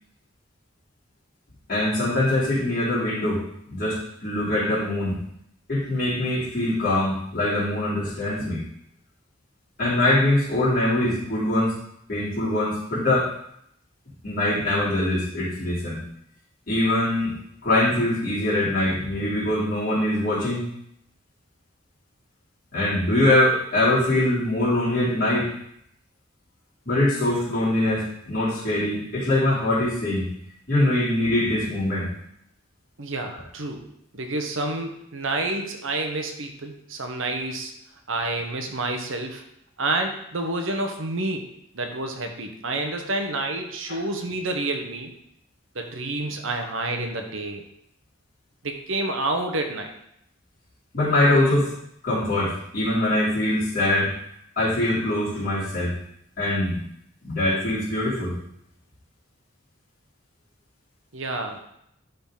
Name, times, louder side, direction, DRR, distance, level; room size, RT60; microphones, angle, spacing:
voice 1, 1.7-3.4 3.7-5.2 5.7-8.6 9.8-11.7 12.1-13.3 14.2-16.0 16.7-17.3 17.6-20.6 22.7-25.5 26.8-30.3 30.7-32.1 50.9-51.7 52.0-54.1 54.5-55.9 56.4-56.8 57.2-58.4, left 1 dB, 45° left, -9 dB, 3.3 m, -23 dB
voice 2, 33.0-33.9 34.1-37.7 38.1-39.4 39.8-41.5 41.7-45.1 45.7-47.7 48.6-49.9 61.1-61.6, right 2 dB, 80° right, 4 dB, 1.0 m, -29 dB
11.5 x 4.0 x 3.9 m, 0.74 s
head